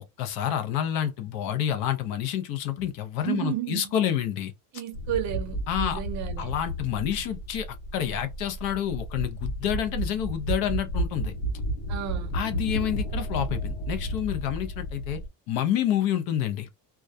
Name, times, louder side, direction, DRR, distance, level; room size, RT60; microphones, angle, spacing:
voice 1, 0.2-4.5 5.7-6.0 6.4-7.7 7.9-11.3 12.3-15.2 15.5-16.7, left 10 dB, 60° left, 0.6 m, -28 dB
voice 2, 3.3-3.9 4.7-6.5 11.9-12.3, right 11 dB, 45° right, 0.6 m, -32 dB
sound 1, 4.9-15.3, right 1 dB, 85° left, 0.9 m, -32 dB
2.2 x 2.2 x 2.5 m
cardioid pair, 155°, 40 cm